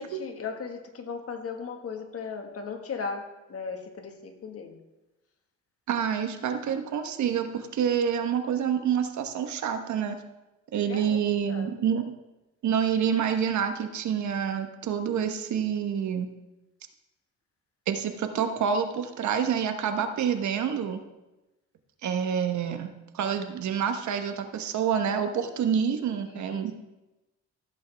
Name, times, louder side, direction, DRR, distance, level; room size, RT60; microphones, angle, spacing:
voice 1, 0.0-3.2 3.5-4.8 10.9-11.2 11.5-11.7 26.3-26.6, left 5 dB, 50° left, 5 dB, 1.6 m, -37 dB
voice 2, 5.9-10.2 10.7-12.1 12.6-16.3 17.9-21.0 22.0-26.7, right 7 dB, 70° right, 7 dB, 1.2 m, -27 dB
14.5 x 8.1 x 3.4 m, 1.0 s
cardioid pair, 90°, 30 cm